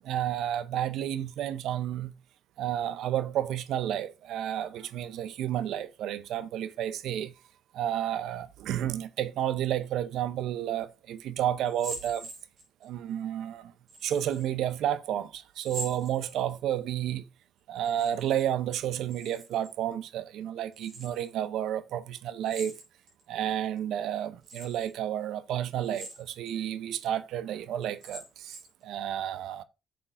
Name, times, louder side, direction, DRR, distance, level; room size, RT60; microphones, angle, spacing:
voice 1, 0.1-2.1 2.6-7.3 7.7-12.3 12.8-13.6 14.0-17.2 17.7-22.7 23.3-28.2 28.8-29.6, right 11 dB, 80° right, 0.6 m, -31 dB
sound 1, 11.6-12.9 13.9-14.5 15.5-16.7 17.7-18.5 18.7-19.7 20.7-21.3 22.4-23.2 23.8-23.9 24.4-24.9 25.8-26.5 27.0-27.1 27.8-28.8, right 2 dB, 65° right, 4.4 m, -43 dB
9.9 x 7.7 x 2.5 m
cardioid pair, 90°, 0 cm